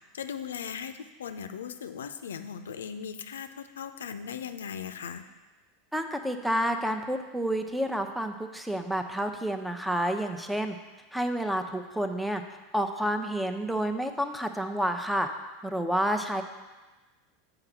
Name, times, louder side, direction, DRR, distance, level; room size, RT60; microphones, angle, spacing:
voice 1, 0.1-5.2, left 7 dB, 85° left, 9 dB, 0.5 m, -38 dB
voice 2, 5.9-10.8 11.1-12.4 12.7-15.3 15.6-16.4, equal, 5° right, 6 dB, 0.8 m, -29 dB
7.7 x 5.1 x 6.0 m, 1.2 s
hypercardioid pair, 95°, 0 cm